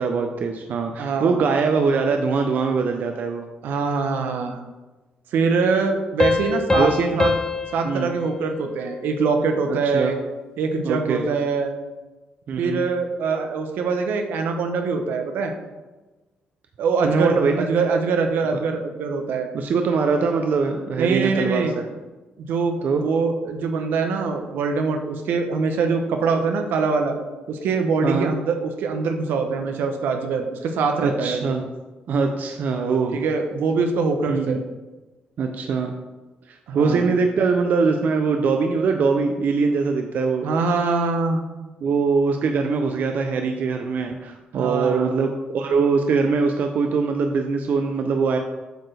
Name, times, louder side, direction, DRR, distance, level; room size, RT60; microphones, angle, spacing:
voice 1, 0.0-3.5 6.8-7.2 7.8-8.1 9.9-10.1 10.8-11.2 12.5-12.9 17.0-17.7 19.5-21.9 22.8-23.0 28.0-28.3 31.0-31.7 32.1-33.1 34.3-34.6 35.4-35.9 36.5-40.5 41.8-48.4, right 4 dB, 60° right, 4 dB, 0.5 m, -22 dB
voice 2, 1.0-1.4 3.6-4.6 5.3-6.9 7.2-7.3 7.7-10.2 10.6-11.7 12.6-15.5 16.8-19.5 21.0-21.8 22.4-27.2 27.5-31.5 33.1-34.6 36.7-37.1 40.4-41.4 44.5-45.1, right 4 dB, 85° right, 5 dB, 0.8 m, -23 dB
Piano, 6.2-9.5, left 3 dB, 20° left, 0.3 m, -25 dB
7.8 x 4.4 x 3.3 m, 1.2 s
cardioid pair, 105°, 3 cm